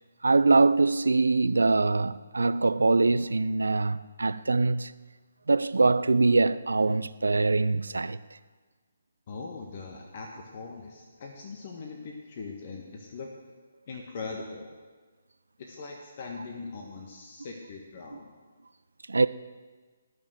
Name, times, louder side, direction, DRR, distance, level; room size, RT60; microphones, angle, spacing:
voice 1, 0.2-4.9 5.5-8.2 19.1-19.3, right 3 dB, 75° right, 0.5 m, -23 dB
voice 2, 9.3-13.3 13.9-14.7 15.6-18.3, left 4 dB, 45° left, 1.6 m, -41 dB
17.5 x 6.4 x 7.8 m
figure-of-eight pair, 140°, 0 cm